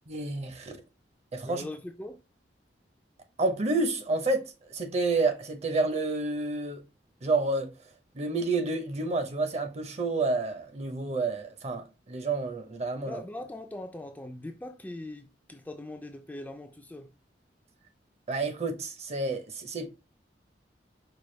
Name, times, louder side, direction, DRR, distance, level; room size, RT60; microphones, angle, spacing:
voice 1, 0.1-0.8 1.3-1.7 3.4-6.8 7.2-7.7 8.1-13.2 18.3-19.9, right 3 dB, 40° right, 0.7 m, -29 dB
voice 2, 1.5-2.2 13.1-17.1, left 1 dB, 10° left, 0.3 m, -41 dB
4.7 x 2.2 x 3.1 m
head